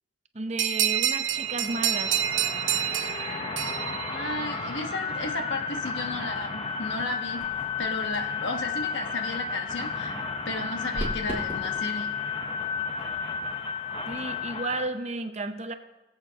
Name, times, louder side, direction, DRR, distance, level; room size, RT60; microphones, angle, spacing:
voice 1, 0.3-2.1 14.1-15.7, right 2 dB, 35° right, 8 dB, 0.7 m, -33 dB
sound 1, 0.6-4.8, right 10 dB, 75° right, 0.6 m, -28 dB
sound 2, 1.2-14.9, left 5 dB, 30° left, 0.8 m, -33 dB
voice 2, 4.1-7.4 7.8-10.1 10.4-12.1, left 2 dB, 65° left, 4 dB, 1.2 m, -34 dB
sound 3, 6.7-14.4, equal, 10° right, 3.1 m, -42 dB
21.0 x 8.1 x 2.8 m, 1.1 s
head